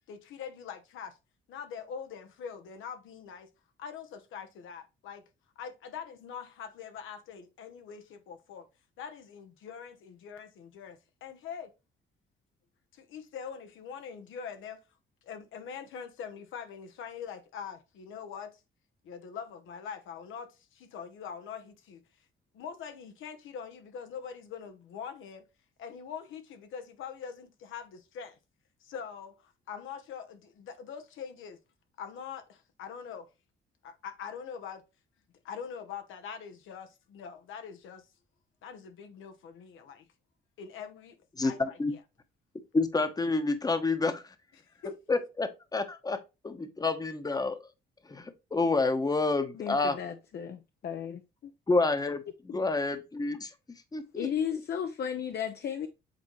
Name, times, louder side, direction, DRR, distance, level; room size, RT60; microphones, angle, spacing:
voice 1, 0.1-1.2 1.5-3.5 3.8-5.2 5.6-8.7 9.0-11.7 12.9-14.8 15.2-18.6 19.0-22.0 22.5-25.4 25.8-28.4 28.8-31.6 32.0-33.3 33.8-34.8 35.4-38.1 38.6-40.1 40.6-41.2 41.4-41.8 44.6-45.0, left 7 dB, 80° left, 1.1 m, -43 dB
voice 2, 41.4-41.9 42.7-44.3 45.1-47.6 48.1-50.0 51.7-53.5 53.9-54.3, left 3 dB, 20° left, 1.0 m, -29 dB
voice 3, 49.6-51.5 54.2-55.9, left 8 dB, 55° left, 0.7 m, -34 dB
7.8 x 3.9 x 3.1 m
cardioid pair, 90°, 20 cm